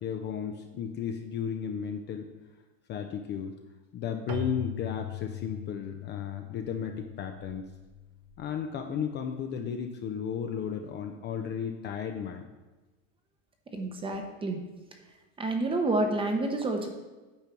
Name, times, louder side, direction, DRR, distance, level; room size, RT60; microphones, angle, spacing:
voice 1, 0.0-2.3 2.9-3.6 3.9-7.7 8.4-12.4, left 7 dB, 30° left, 4 dB, 0.6 m, -34 dB
Keyboard (musical), 4.3-8.8, left 5 dB, 35° right, 0.9 m, -41 dB
voice 2, 13.7-14.6 15.4-16.9, right 2 dB, 15° right, 4 dB, 0.9 m, -29 dB
8.7 x 4.4 x 6.1 m, 1.2 s
supercardioid pair, 140°, 38 cm